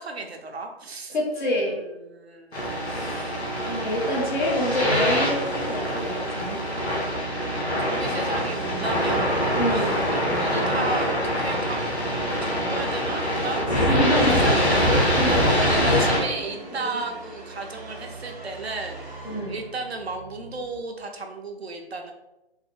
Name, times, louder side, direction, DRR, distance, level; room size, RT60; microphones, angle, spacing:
voice 1, 0.0-2.8 7.8-10.0 10.3-11.8 12.4-13.7 14.2-19.1 19.5-22.1, right 3 dB, 75° right, 4 dB, 0.6 m, -34 dB
voice 2, 1.1-1.8 2.8-3.3 3.7-6.6 9.5-10.1 13.7-14.5 14.9-15.4 15.9-16.1 16.8-16.9 19.2-19.6, left 1 dB, 50° left, -3 dB, 1.2 m, -27 dB
sound 1, 2.5-16.2, equal, 85° left, 1.1 m, -24 dB
Musical instrument, 7.1-20.8, right 3 dB, 15° right, 0.5 m, -40 dB
3.5 x 2.1 x 3.4 m, 0.94 s
figure-of-eight pair, 135°, 32 cm